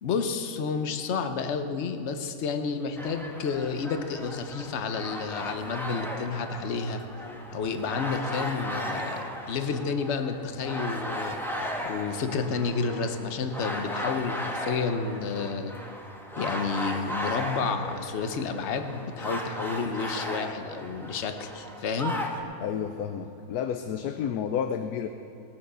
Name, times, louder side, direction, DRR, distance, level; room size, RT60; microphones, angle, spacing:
voice 1, 0.0-7.0 7.5-11.4 11.8-15.7 16.4-22.1, left 5 dB, 55° left, 8 dB, 1.1 m, -30 dB
sound 1, 3.0-22.4, equal, ahead, 1.1 m, -36 dB
voice 2, 22.6-25.1, left 8 dB, 90° left, 8 dB, 1.2 m, -31 dB
19.5 x 7.1 x 6.8 m, 3.0 s
omnidirectional pair, 1.6 m